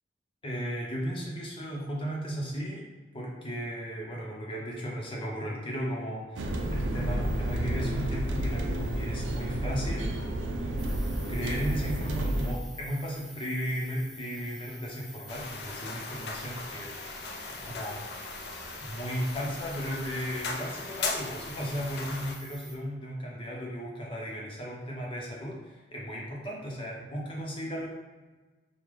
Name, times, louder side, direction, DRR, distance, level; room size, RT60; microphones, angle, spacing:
voice 1, 0.4-2.9 3.1-10.1 11.3-16.9 17.5-18.0 18.8-27.9, equal, 30° left, -3 dB, 0.8 m, -35 dB
sound 1, 6.4-12.5, right 1 dB, 80° right, 0.5 m, -30 dB
sound 2, 10.8-22.8, equal, ahead, 0.5 m, -49 dB
sound 3, 15.3-22.4, left 3 dB, 55° left, 0.5 m, -38 dB
5.3 x 2.3 x 3.3 m, 1.3 s
head